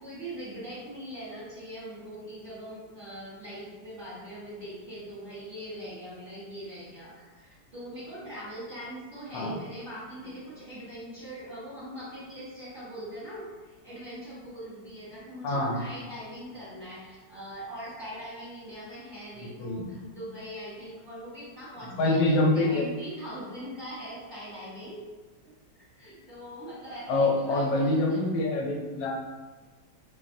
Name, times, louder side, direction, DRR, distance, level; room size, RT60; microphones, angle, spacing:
voice 1, 0.0-25.0 25.4-28.3, equal, 35° right, -11 dB, 1.1 m, -42 dB
voice 2, 15.4-15.9 19.4-19.9 21.9-22.9 27.1-29.1, left 2 dB, 85° left, 0 dB, 1.2 m, -25 dB
4.1 x 2.0 x 2.5 m, 1.3 s
omnidirectional pair, 1.9 m